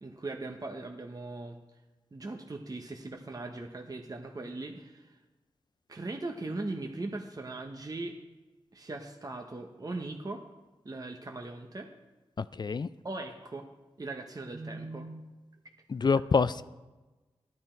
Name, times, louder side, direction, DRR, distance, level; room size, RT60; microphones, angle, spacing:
voice 1, 0.0-1.6 2.1-5.2 5.9-8.2 8.7-10.4 10.8-11.9 13.0-13.7 14.0-15.2, right 2 dB, 35° right, 3 dB, 0.9 m, -39 dB
voice 2, 12.4-12.9 15.9-16.6, left 5 dB, 45° left, 15 dB, 0.3 m, -26 dB
11.5 x 9.7 x 4.5 m, 1.2 s
cardioid pair, 55°, 10 cm